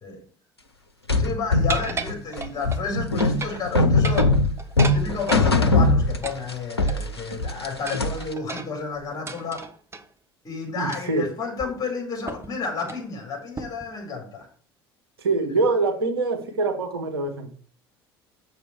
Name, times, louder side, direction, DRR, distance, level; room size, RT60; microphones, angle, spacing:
sound 1, 1.1-6.5 6.8-8.3, left 2 dB, 85° left, 0.7 m, -21 dB
voice 1, 1.2-4.4 4.9-9.7 10.4-14.5, left 4 dB, 30° left, 4.3 m, -31 dB
sound 2, 1.7-2.8 3.2-3.7 3.9-5.5 6.2-7.2 7.9-10.1 10.9-11.2 11.6-11.7 12.3-12.5 12.8-13.1 13.6-13.9, right 4 dB, 20° right, 1.1 m, -35 dB
voice 2, 10.7-11.3 15.2-17.5, right 3 dB, 75° right, 1.3 m, -24 dB
7.9 x 6.6 x 4.4 m
figure-of-eight pair, 60°, 13 cm